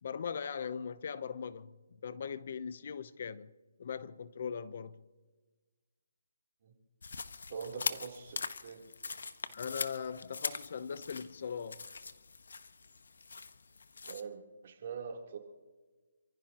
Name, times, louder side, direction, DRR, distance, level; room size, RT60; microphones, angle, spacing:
voice 1, 0.0-1.8 2.0-3.5 3.8-5.0 9.5-11.8, left 6 dB, 50° left, 0.8 m, -40 dB
sound 1, 7.0-14.2, left 4 dB, 75° left, 1.2 m, -42 dB
voice 2, 7.5-8.4 8.6-8.8 14.0-15.4, right 6 dB, 45° right, 3.4 m, -43 dB
28.5 x 15.5 x 3.0 m
hypercardioid pair, 160°, 0 cm